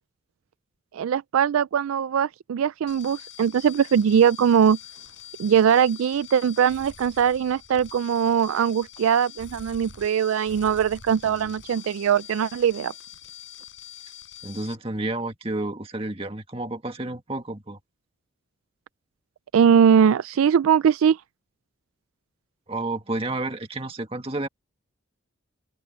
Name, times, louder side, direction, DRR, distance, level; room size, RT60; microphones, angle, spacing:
voice 1, 0.9-4.8 5.4-12.9 19.5-21.2, right 8 dB, 80° right, 0.3 m, -21 dB
sound 1, 2.9-14.7, left 9 dB, 60° left, 6.9 m, -45 dB
voice 2, 14.4-17.8 22.7-24.5, right 2 dB, 25° right, 1.9 m, -31 dB
open air
head